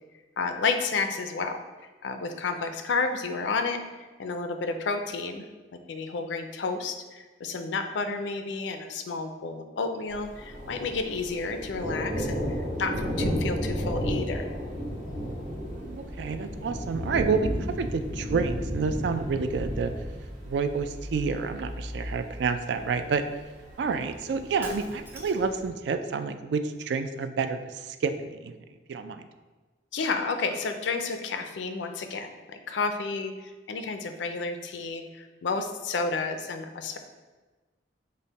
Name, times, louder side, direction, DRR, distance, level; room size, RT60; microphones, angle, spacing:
voice 1, 0.4-1.6 2.0-3.8 4.2-5.4 5.9-12.4 12.8-14.5 29.9-37.0, left 4 dB, 80° left, 7 dB, 0.4 m, -31 dB
Thunder, 10.1-25.7, equal, 45° right, 1.2 m, -33 dB
voice 2, 15.8-17.5 17.8-19.9 20.5-23.2 23.8-28.6 28.9-29.3, right 5 dB, 70° right, 9 dB, 0.3 m, -29 dB
Shatter, 24.6-25.6, right 1 dB, 10° right, 0.5 m, -43 dB
5.3 x 2.1 x 4.0 m, 1.3 s
head